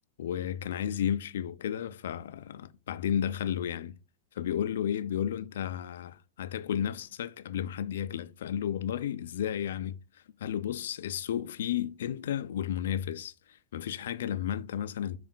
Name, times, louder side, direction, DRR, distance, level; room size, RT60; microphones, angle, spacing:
voice 1, 0.2-4.0 4.3-15.2, left 9 dB, 90° left, 0.3 m, -33 dB
4.3 x 2.3 x 3.6 m
supercardioid pair, 170°, 0 cm